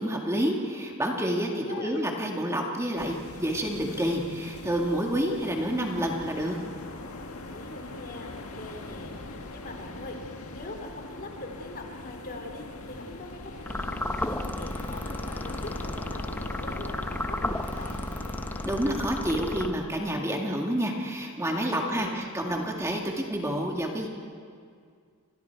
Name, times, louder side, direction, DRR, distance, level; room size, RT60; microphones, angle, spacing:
voice 1, 0.0-6.6 18.7-24.1, equal, 15° right, 0 dB, 2.0 m, -29 dB
voice 2, 1.3-1.9 7.2-10.2 10.5-18.0 21.5-22.2, left 2 dB, 45° left, 2 dB, 3.5 m, -42 dB
sound 1, 3.0-19.1, left 2 dB, 75° left, 1.9 m, -41 dB
sound 2, 13.7-20.2, left 1 dB, 10° left, 0.5 m, -33 dB
29.5 x 26.0 x 4.7 m, 2.2 s
head